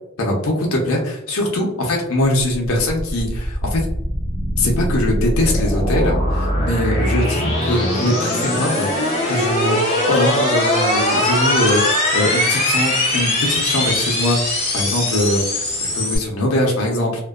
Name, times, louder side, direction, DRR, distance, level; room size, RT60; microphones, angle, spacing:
voice 1, 0.2-3.8 4.6-14.4 14.7-17.3, left 1 dB, 75° left, -1 dB, 0.6 m, -21 dB
sound 1, 2.4-16.2, left 1 dB, 30° left, 0.7 m, -21 dB
2.5 x 2.2 x 2.3 m, 0.81 s
head